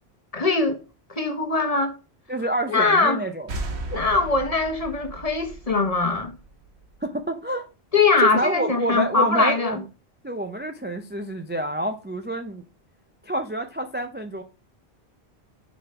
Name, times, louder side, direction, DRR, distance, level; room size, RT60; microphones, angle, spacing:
voice 1, 0.3-0.8 1.1-1.9 2.7-3.2 3.9-6.3 7.9-9.8, left 3 dB, 35° left, 1.2 m, -22 dB
voice 2, 2.3-3.5 7.0-7.7 8.2-9.8 10.2-12.6 13.2-14.4, right 1 dB, 15° right, 0.4 m, -27 dB
sound 1, 3.5-7.0, right 2 dB, 90° right, 1.4 m, -36 dB
7.1 x 4.2 x 5.6 m
omnidirectional pair, 1.1 m